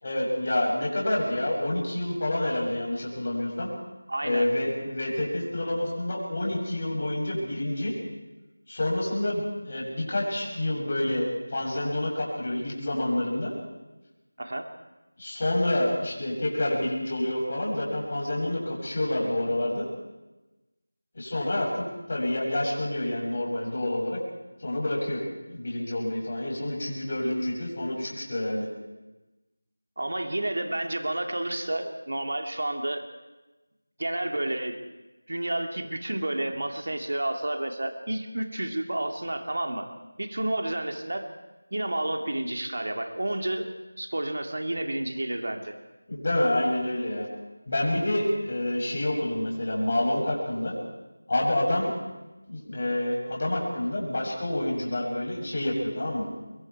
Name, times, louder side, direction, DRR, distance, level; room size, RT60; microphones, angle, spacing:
voice 1, 0.0-3.7 4.2-7.9 8.7-13.5 15.2-19.9 21.1-24.2 24.6-25.2 25.5-28.7 46.1-47.3 47.7-50.7 51.3-51.9 52.5-56.3, left 1 dB, 40° left, -2 dB, 7.1 m, -28 dB
voice 2, 4.1-4.5 14.4-14.7 30.0-33.0 34.0-34.8 35.3-39.9 40.2-41.3 41.7-43.7 44.0-45.7, right 1 dB, 60° right, 4 dB, 2.3 m, -30 dB
25.0 x 22.5 x 4.7 m, 1.1 s
figure-of-eight pair, 170°, 0 cm